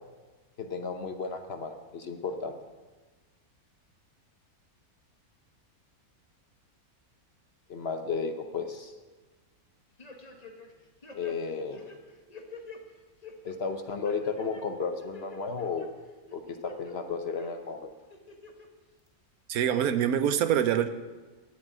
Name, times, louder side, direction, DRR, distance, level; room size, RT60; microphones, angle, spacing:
voice 1, 0.6-2.6 7.7-8.9 11.1-11.8 13.4-15.9 16.3-17.9, left 5 dB, 50° left, 7 dB, 0.9 m, -33 dB
sound 1, 10.0-10.7 11.0-12.8 13.2-13.6 14.0-14.6 15.0-15.9 16.3-16.9 17.4-17.5 18.1-18.7 19.1-19.2, left 4 dB, 30° left, 1.3 m, -47 dB
voice 2, 19.5-20.9, right 9 dB, 75° right, 11 dB, 1.2 m, -25 dB
11.0 x 7.6 x 8.9 m, 1.3 s
omnidirectional pair, 1.6 m